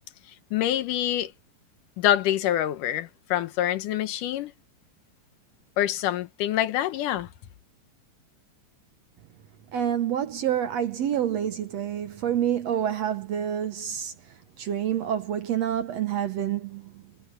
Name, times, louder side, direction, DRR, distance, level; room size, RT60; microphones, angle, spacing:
voice 1, 0.5-1.3 2.0-4.5 5.8-7.3, left 12 dB, 75° left, 2.4 m, -26 dB
voice 2, 9.7-14.1 14.6-16.9, right 10 dB, 65° right, 1.8 m, -27 dB
omnidirectional pair, 3.9 m